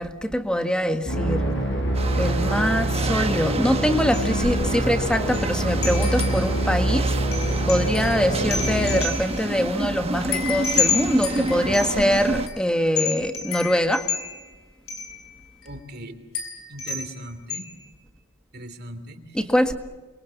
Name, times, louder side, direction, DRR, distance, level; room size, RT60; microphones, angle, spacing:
voice 1, 0.0-1.5 2.1-7.4 7.7-14.1 19.3-19.7, equal, 5° left, 7 dB, 1.7 m, -23 dB
sound 1, 1.1-9.0, right 1 dB, 60° left, 5.7 m, -25 dB
sound 2, 1.9-12.5, right 2 dB, 30° right, 1.3 m, -30 dB
sound 3, 4.1-4.5 4.8-4.9 5.3-5.5 5.8-6.6 7.3-9.5 10.3-12.6 13.0-14.5 14.9-15.2 15.6-15.7 16.3-17.1 17.5-17.8, left 6 dB, 80° left, 7.2 m, -30 dB
voice 2, 15.6-16.1 16.7-17.7 18.5-19.2, right 1 dB, 50° right, 8 dB, 3.1 m, -38 dB
29.0 x 23.5 x 7.2 m, 1.3 s
head